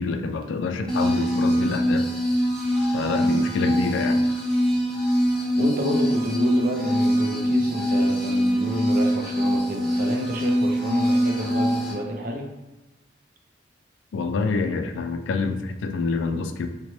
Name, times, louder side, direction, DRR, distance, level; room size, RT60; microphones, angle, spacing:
voice 1, 0.0-2.1 2.9-4.2 14.1-16.7, left 4 dB, 90° left, 8 dB, 0.3 m, -26 dB
sound 1, 0.9-11.9, equal, ahead, 0.7 m, -23 dB
voice 2, 5.5-12.5, equal, 50° right, 1 dB, 0.6 m, -29 dB
4.0 x 2.2 x 3.1 m, 1.1 s
head